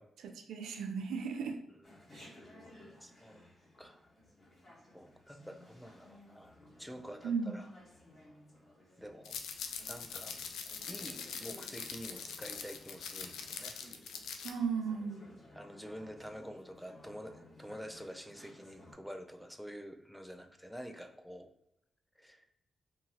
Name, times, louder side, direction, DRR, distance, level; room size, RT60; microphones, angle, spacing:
voice 1, 0.2-1.6 2.1-2.3 7.2-7.6 14.4-15.2, right 5 dB, 85° right, 4 dB, 0.4 m, -36 dB
Chatter, 1.8-18.9, left 1 dB, 45° left, 1.4 m, -58 dB
voice 2, 3.0-3.4 3.8-4.0 4.9-6.5 6.8-7.7 9.0-9.4 9.9-10.4 10.9-13.8 15.5-21.5 22.2-22.5, equal, ahead, 6 dB, 0.5 m, -48 dB
sound 1, 9.2-14.5, left 6 dB, 90° left, 0.3 m, -43 dB
2.6 x 2.6 x 2.9 m, 0.83 s
supercardioid pair, 50°, 0 cm